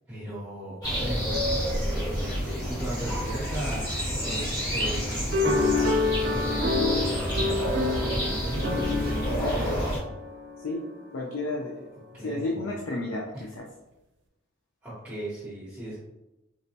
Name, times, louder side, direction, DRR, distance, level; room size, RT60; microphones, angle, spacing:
voice 1, 0.1-9.9 12.1-12.7 13.3-13.5 14.8-16.0, right 1 dB, 10° right, -10 dB, 0.9 m, -37 dB
sound 1, 0.8-10.0, equal, 20° left, 1.1 m, -29 dB
sound 2, 5.3-10.9, left 3 dB, 60° right, 0.5 m, -28 dB
voice 2, 9.4-9.7 10.6-10.8 11.1-11.9 12.2-13.7, left 2 dB, 90° left, -1 dB, 0.5 m, -32 dB
4.1 x 2.2 x 2.7 m, 0.96 s
head